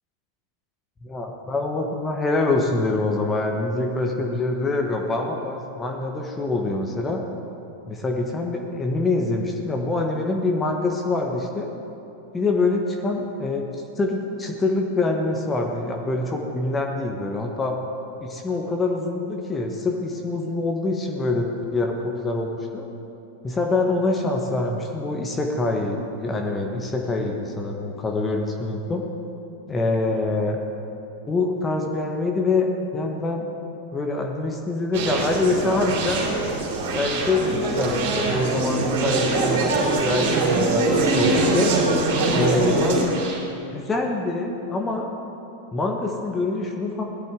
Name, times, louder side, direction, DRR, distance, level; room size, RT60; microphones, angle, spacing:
voice 1, 1.0-7.2 7.9-11.7 12.3-13.7 14.0-17.8 18.2-22.9 23.4-29.0 29.7-30.6 31.3-33.5 33.9-36.2 36.9-41.7 42.3-43.2 43.7-45.1 45.7-47.1, left 2 dB, 15° left, 2 dB, 1.2 m, -25 dB
Conversation, 34.9-43.4, right 2 dB, 55° right, 3.3 m, -22 dB
18.5 x 12.0 x 3.8 m, 2.8 s
figure-of-eight pair, 90°, 0 cm